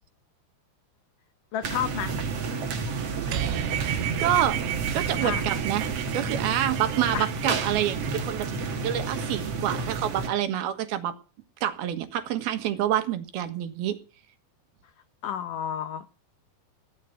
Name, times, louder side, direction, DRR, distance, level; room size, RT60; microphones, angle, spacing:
voice 1, 1.5-2.2 3.9-4.0 5.2-5.4 7.1-7.6 15.2-16.1, left 9 dB, 80° left, 1.9 m, -31 dB
sound 1, 1.6-10.3, right 4 dB, 45° right, 2.3 m, -31 dB
sound 2, 3.3-8.9, right 12 dB, 90° right, 3.5 m, -33 dB
voice 2, 4.2-4.6 4.9-5.8 6.1-11.1 11.6-14.0, right 11 dB, 65° right, 3.2 m, -27 dB
17.0 x 12.5 x 5.7 m
omnidirectional pair, 5.0 m